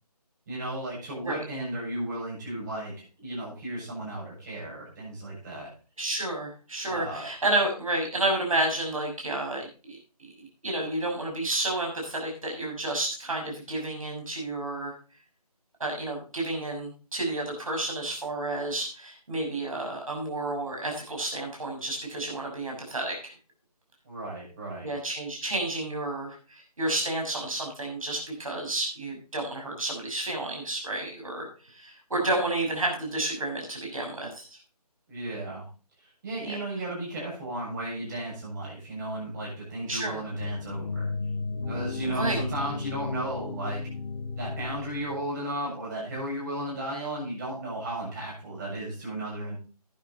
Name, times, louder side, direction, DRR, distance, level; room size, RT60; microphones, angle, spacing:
voice 1, 0.5-2.9 3.2-5.7 6.9-7.3 24.0-24.9 35.1-35.6 36.2-41.1 41.7-43.9 44.4-49.6, right 1 dB, 30° right, -4 dB, 7.6 m, -34 dB
voice 2, 6.0-14.9 15.8-23.3 24.8-34.6 36.4-36.5 39.9-40.2 42.1-42.4, right 2 dB, 55° right, 1 dB, 6.3 m, -31 dB
sound 1, 40.4-45.4, left 4 dB, 15° left, 3.8 m, -34 dB
11.5 x 10.5 x 4.0 m, 0.36 s
figure-of-eight pair, 155°, 20 cm